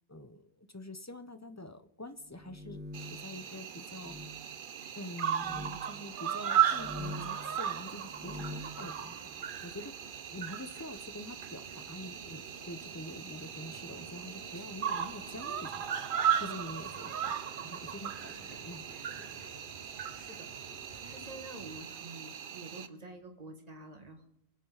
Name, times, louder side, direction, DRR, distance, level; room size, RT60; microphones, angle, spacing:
voice 1, 0.1-4.2 4.9-16.0 16.4-17.3 17.6-18.8 19.2-19.3, left 1 dB, 20° left, 10 dB, 0.7 m, -46 dB
sound 1, 2.3-3.3 4.0-4.3 5.3-5.8 6.7-7.4 8.0-8.7, left 1 dB, 10° right, 1.5 m, -43 dB
Cricket, 2.9-22.9, right 9 dB, 60° right, 0.8 m, -36 dB
Vehicle, 6.4-21.8, right 2 dB, 75° right, 1.8 m, -54 dB
voice 2, 20.1-20.5 21.0-24.3, right 2 dB, 40° right, 4 dB, 1.8 m, -48 dB
24.0 x 8.2 x 4.0 m, 0.89 s
omnidirectional pair, 1.1 m